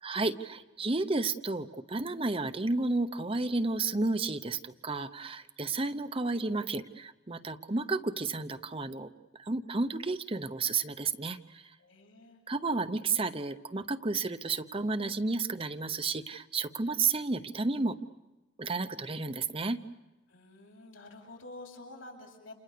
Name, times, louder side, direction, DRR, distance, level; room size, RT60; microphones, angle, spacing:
voice 1, 0.0-11.8 12.5-18.0 18.6-19.8, right 3 dB, 30° right, 10 dB, 0.9 m, -32 dB
voice 2, 11.8-12.4 16.8-16.9 20.3-22.5, left 2 dB, 80° left, 1 dB, 7.9 m, -49 dB
30.0 x 28.5 x 6.8 m, 1.1 s
head